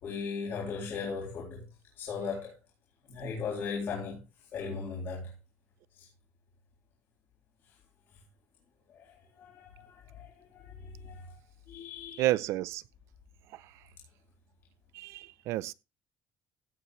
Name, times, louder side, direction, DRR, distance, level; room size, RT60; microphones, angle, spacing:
voice 1, 0.0-1.7 2.0-2.6 3.1-4.2 4.5-5.3 5.9-6.1 8.9-11.4 11.7-12.3, left 5 dB, 50° left, 3.5 m, -38 dB
voice 2, 12.2-12.8 13.5-13.8 14.9-15.7, right 16 dB, 75° right, 0.6 m, -31 dB
15.5 x 8.4 x 3.1 m
cardioid pair, 155°, 5 cm